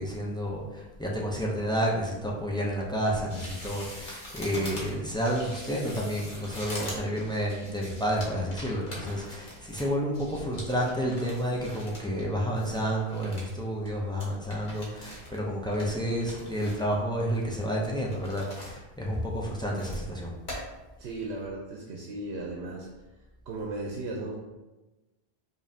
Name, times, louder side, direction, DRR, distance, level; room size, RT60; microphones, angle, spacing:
voice 1, 0.0-20.3, equal, 5° left, -3 dB, 0.4 m, -30 dB
sound 1, 3.3-12.3 12.5-13.5 13.9-14.0 14.2-15.4 15.7-16.9 17.3-18.8 19.1-20.1 20.5-20.6, left 1 dB, 50° left, 1.2 m, -42 dB
voice 2, 21.0-22.9 23.5-24.4, right 2 dB, 90° right, -1 dB, 0.9 m, -36 dB
5.0 x 2.7 x 2.7 m, 1.1 s
omnidirectional pair, 1.1 m